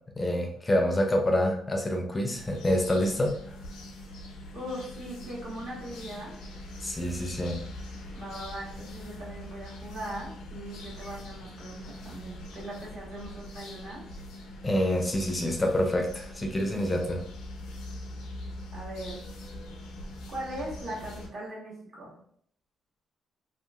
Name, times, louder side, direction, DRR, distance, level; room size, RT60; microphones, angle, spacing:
voice 1, 0.2-3.4 6.8-7.6 14.6-17.2, left 1 dB, 20° left, 2 dB, 0.5 m, -27 dB
sound 1, 2.3-21.3, left 1 dB, 85° left, 0.5 m, -43 dB
voice 2, 4.5-6.4 8.1-14.0 18.7-19.2 20.3-22.1, right 1 dB, 55° right, -4 dB, 1.3 m, -40 dB
2.8 x 2.6 x 2.3 m, 0.62 s
cardioid pair, 90°, 0 cm